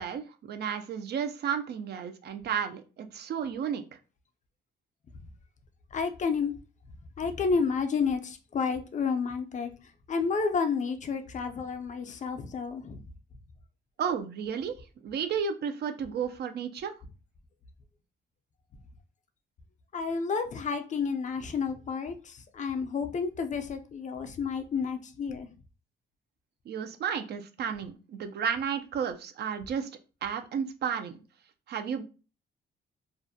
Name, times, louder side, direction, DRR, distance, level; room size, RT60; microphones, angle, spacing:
voice 1, 0.0-3.8 14.0-14.8 15.0-16.9 26.7-29.9 30.2-31.2 31.7-32.0, right 7 dB, 55° right, 0.4 m, -32 dB
voice 2, 5.9-6.5 7.2-9.7 10.1-13.0 19.9-25.5, left 5 dB, 40° left, 0.4 m, -30 dB
2.4 x 2.1 x 2.6 m
cardioid pair, 90°, 20 cm